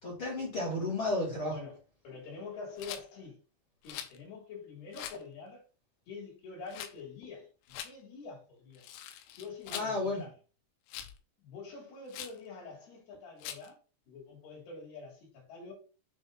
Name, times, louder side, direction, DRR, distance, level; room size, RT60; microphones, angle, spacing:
voice 1, 0.0-1.5 9.7-10.2, left 2 dB, 35° left, 2.6 m, -32 dB
voice 2, 1.5-1.8 2.0-3.4 3.8-5.6 6.1-8.9 9.4-10.3 11.4-13.8 14.1-15.7, left 4 dB, 60° left, 4.5 m, -46 dB
Rattle, 2.8-3.1 3.9-4.2 4.9-5.2 6.7-6.9 7.7-7.9 8.8-9.9 10.9-11.2 12.1-12.4 13.4-13.7, left 11 dB, 90° left, 3.2 m, -43 dB
8.4 x 3.5 x 3.7 m
omnidirectional pair, 5.4 m